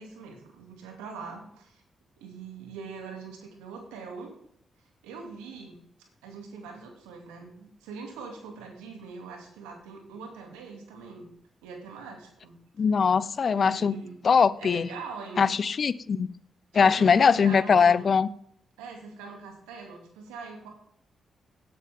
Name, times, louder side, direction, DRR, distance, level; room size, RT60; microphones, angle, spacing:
voice 1, 0.0-1.8 2.2-4.3 5.0-5.8 6.2-11.3 11.6-12.6 13.5-14.1 14.6-15.5 16.8-18.1 18.8-20.7, right 5 dB, 90° right, 2 dB, 2.6 m, -42 dB
voice 2, 12.8-14.0 14.2-14.9 15.4-16.3 16.7-18.3, left 6 dB, 55° left, 17 dB, 0.6 m, -21 dB
17.5 x 9.5 x 3.7 m, 0.69 s
hypercardioid pair, 45°, 0 cm